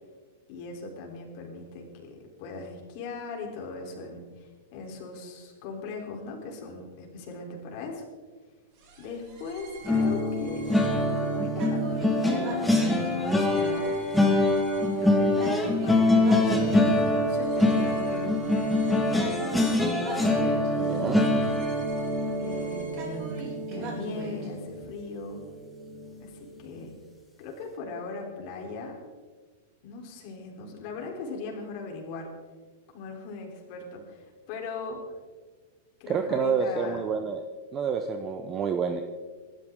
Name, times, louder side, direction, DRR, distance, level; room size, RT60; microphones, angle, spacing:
voice 1, 0.5-8.0 9.0-10.7 11.1-14.0 15.0-18.5 19.0-19.8 22.4-25.4 26.2-26.9 27.4-29.0 29.8-32.3 32.9-35.0 36.0-37.0, left 3 dB, 40° left, 1 dB, 3.6 m, -39 dB
sound 1, 8.8-24.5, right 3 dB, 35° right, 4.1 m, -43 dB
sound 2, 9.9-25.0 25.4-25.7 26.0-26.2, left 1 dB, 5° left, 1.6 m, -25 dB
voice 2, 20.8-21.2 36.1-37.4 37.7-39.0, right 6 dB, 20° right, 6 dB, 0.7 m, -28 dB
25.5 x 12.5 x 3.7 m, 1.4 s
supercardioid pair, 175°, 0 cm